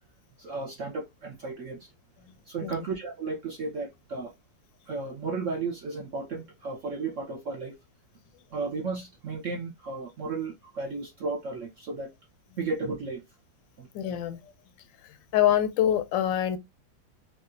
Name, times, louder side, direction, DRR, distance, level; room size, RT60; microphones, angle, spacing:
voice 1, 0.4-1.9 2.5-4.3 4.9-7.8 8.5-12.1 12.6-13.2 13.8-13.9, right 4 dB, 60° right, 0.8 m, -34 dB
voice 2, 13.9-14.5 15.0-16.6, left 11 dB, 80° left, 1.3 m, -26 dB
4.7 x 2.4 x 2.5 m
omnidirectional pair, 2.0 m